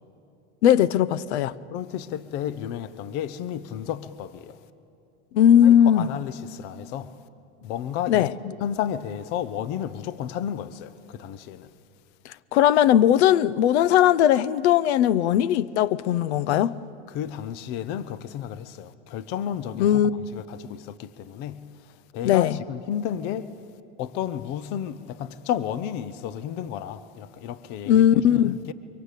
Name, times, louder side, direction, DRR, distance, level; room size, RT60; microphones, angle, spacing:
voice 1, 0.6-1.5 5.3-6.1 8.1-8.3 12.2-16.8 19.8-20.2 22.2-22.6 27.9-28.6, left 10 dB, 65° left, 0.8 m, -19 dB
voice 2, 1.7-4.6 5.6-7.1 7.6-11.7 17.1-23.5 24.0-28.7, left 10 dB, 30° left, 0.5 m, -32 dB
24.5 x 24.0 x 8.3 m
supercardioid pair, 170°, 36 cm